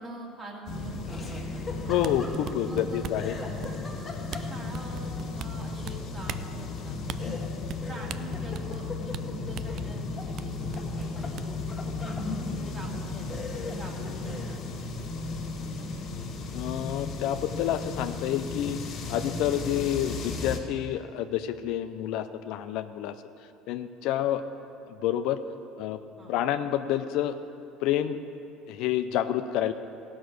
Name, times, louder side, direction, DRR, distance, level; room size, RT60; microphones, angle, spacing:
voice 1, 0.0-1.9 2.6-3.8 4.3-7.3 7.9-15.9 26.2-26.3, right 2 dB, 25° right, -1 dB, 2.2 m, -45 dB
sound 1, 0.7-20.6, left 3 dB, 50° left, 2.1 m, -35 dB
Laughter, 1.1-2.8 3.2-4.8 7.2-10.3 10.6-12.3 12.9-13.0 13.3-14.6, left 3 dB, 15° left, 1.5 m, -42 dB
voice 2, 1.8-3.3 7.2-7.4 16.5-18.8 19.1-23.2 23.7-24.4 25.0-25.4 25.8-26.0 26.3-27.4 27.8-28.2 28.7-29.7, left 11 dB, 70° left, 9 dB, 0.5 m, -28 dB
sound 2, 2.0-3.3 3.6-4.0 4.3-4.4 4.7-5.9 6.3-6.5 7.1-7.2 7.7-7.8 8.1-8.9 9.1-9.2 9.6-9.9 10.4-10.5 10.7-11.6, right 11 dB, 55° right, 0.4 m, -38 dB
16.0 x 6.0 x 6.4 m, 2.8 s
supercardioid pair, 100°, 0 cm